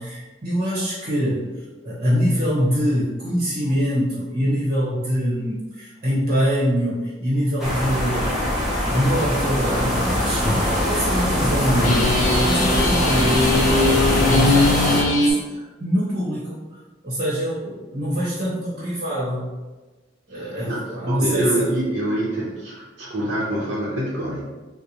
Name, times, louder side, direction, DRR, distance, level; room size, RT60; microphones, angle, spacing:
voice 1, 0.0-8.3 8.9-16.8 17.0-19.5 20.3-21.7, equal, 40° right, -8 dB, 0.9 m, -24 dB
sound 1, 7.6-15.0, equal, ahead, 0.7 m, -22 dB
sound 2, 9.9-10.1 10.4-10.6 11.8-15.3, left 2 dB, 45° left, 0.6 m, -20 dB
voice 2, 20.3-24.4, right 1 dB, 70° right, -8 dB, 0.7 m, -26 dB
4.4 x 2.1 x 2.7 m, 1.2 s
head